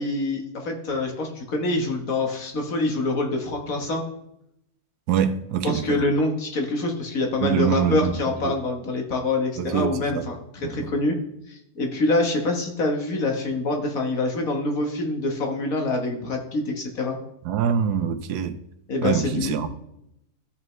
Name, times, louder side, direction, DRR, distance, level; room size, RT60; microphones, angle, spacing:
voice 1, 0.0-4.0 5.6-11.2 11.5-17.2 18.9-19.5, left 2 dB, 65° left, 1.7 m, -25 dB
voice 2, 5.1-6.0 7.4-8.1 8.4-8.5 9.6-10.2 10.6-10.9 17.4-18.6 19.0-19.7, right 8 dB, 90° right, 1.2 m, -24 dB
14.0 x 5.4 x 3.1 m
omnidirectional pair, 1.6 m